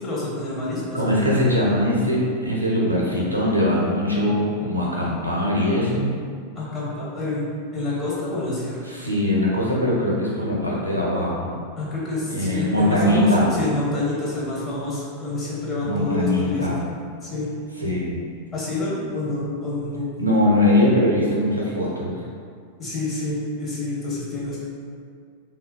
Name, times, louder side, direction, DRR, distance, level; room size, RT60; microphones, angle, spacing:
voice 1, 0.0-1.3 6.5-8.8 11.8-16.7 17.2-17.5 18.5-20.1 22.8-24.6, left 2 dB, 20° left, -7 dB, 0.8 m, -28 dB
voice 2, 0.9-6.1 8.9-11.6 12.3-13.5 15.8-16.8 17.8-18.2 20.2-22.1, left 1 dB, 90° right, -5 dB, 0.5 m, -21 dB
3.2 x 2.3 x 2.2 m, 2.2 s
figure-of-eight pair, 90°, 0 cm